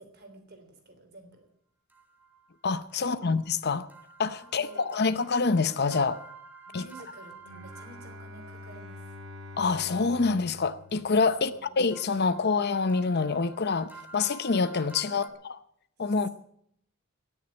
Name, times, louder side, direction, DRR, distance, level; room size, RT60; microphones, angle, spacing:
voice 1, 0.0-1.5 3.2-3.3 4.4-5.0 6.7-9.1 11.4-11.8 15.1-15.4, right 2 dB, 50° right, 3.4 m, -50 dB
sound 1, 1.9-8.3 9.9-15.3, right 4 dB, 10° right, 1.5 m, -51 dB
voice 2, 2.6-3.9 4.2-6.2 6.7-6.9 9.6-15.3 16.0-16.3, left 4 dB, 50° left, 0.7 m, -26 dB
Bowed string instrument, 7.4-11.8, left 2 dB, 75° right, 3.6 m, -46 dB
18.0 x 7.3 x 8.7 m
head